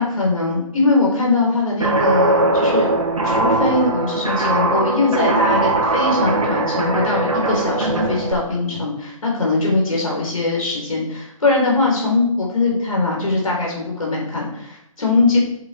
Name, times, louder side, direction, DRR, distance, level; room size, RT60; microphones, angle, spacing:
voice 1, 0.0-2.9 3.2-15.4, left 3 dB, 75° left, -3 dB, 3.8 m, -21 dB
Guitar, 1.8-8.3, right 2 dB, 75° right, 2.2 m, -20 dB
8.7 x 7.5 x 3.4 m, 0.76 s
figure-of-eight pair, 140°, 18 cm